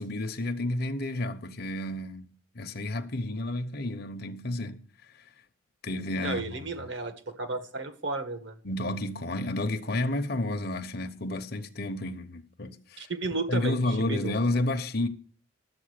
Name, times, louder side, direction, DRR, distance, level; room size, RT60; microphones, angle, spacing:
voice 1, 0.0-4.8 5.8-6.9 8.6-13.1 13.5-15.1, left 1 dB, 50° left, 0.9 m, -31 dB
voice 2, 6.2-8.5 13.0-14.3, right 3 dB, 60° right, 1.4 m, -33 dB
11.5 x 8.3 x 6.6 m
head